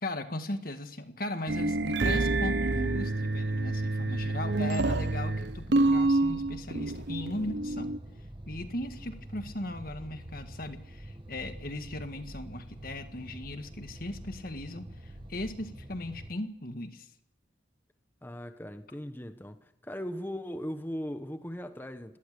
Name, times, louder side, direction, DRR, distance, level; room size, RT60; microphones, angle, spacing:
voice 1, 0.0-7.9 8.4-17.1, left 1 dB, 50° left, 1.8 m, -38 dB
sound 1, 1.5-8.0, right 2 dB, 60° right, 0.9 m, -28 dB
sound 2, 2.9-16.3, right 1 dB, 25° right, 1.5 m, -46 dB
voice 2, 18.2-22.2, equal, 10° left, 1.0 m, -38 dB
29.5 x 18.0 x 6.8 m
head